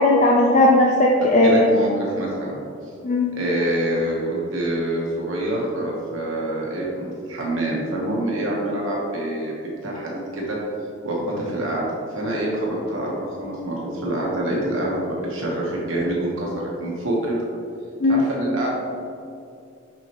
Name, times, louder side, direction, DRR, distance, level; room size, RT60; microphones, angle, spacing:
voice 1, 0.0-1.7 3.0-3.3 18.0-18.2, left 2 dB, 40° left, -2 dB, 0.5 m, -16 dB
voice 2, 1.2-2.6 3.4-9.5 9.8-10.6 11.0-11.8 12.1-16.5 16.8-17.4 18.1-18.7, right 1 dB, 85° right, -4 dB, 1.2 m, -26 dB
6.2 x 5.7 x 3.0 m, 2.5 s
head